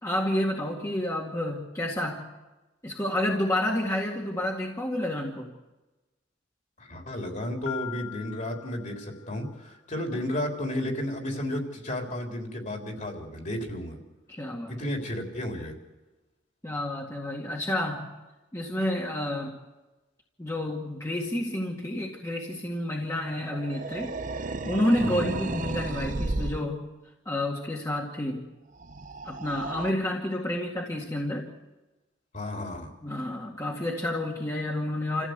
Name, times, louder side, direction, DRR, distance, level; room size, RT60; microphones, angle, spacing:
voice 1, 0.0-2.3 2.8-5.5 10.1-10.2 14.3-14.7 16.6-18.1 18.5-19.6 20.4-24.1 24.6-26.9 27.3-28.5 29.2-31.5 33.0-35.3, left 1 dB, 15° left, -2 dB, 2.1 m, -29 dB
voice 2, 6.8-14.0 14.7-15.8 25.0-25.6 32.3-32.9, left 1 dB, 45° left, 2 dB, 3.8 m, -33 dB
Piano, 7.7-9.6, left 12 dB, 75° left, 1.6 m, -41 dB
sound 1, 23.4-26.7 28.8-29.9, right 2 dB, 45° right, 0.9 m, -33 dB
28.0 x 15.5 x 8.1 m, 1.1 s
head